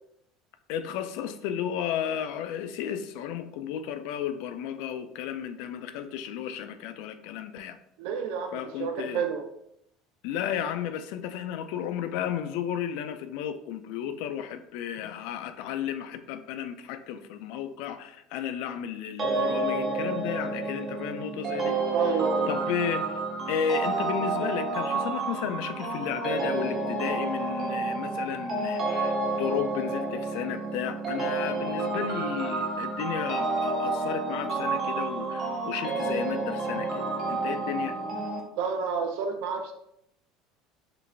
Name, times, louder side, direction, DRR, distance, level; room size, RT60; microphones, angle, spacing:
voice 1, 0.7-7.8 8.5-9.2 10.2-21.8 22.5-23.0 23.5-37.0 37.3-37.9, left 9 dB, 65° left, 9 dB, 0.3 m, -33 dB
voice 2, 8.0-9.4 21.9-22.5 38.5-39.7, right 6 dB, 70° right, 5 dB, 0.5 m, -30 dB
sound 1, 19.2-38.4, right 3 dB, 25° right, 0.5 m, -30 dB
3.9 x 2.4 x 3.3 m, 0.75 s
cardioid pair, 170°, 0 cm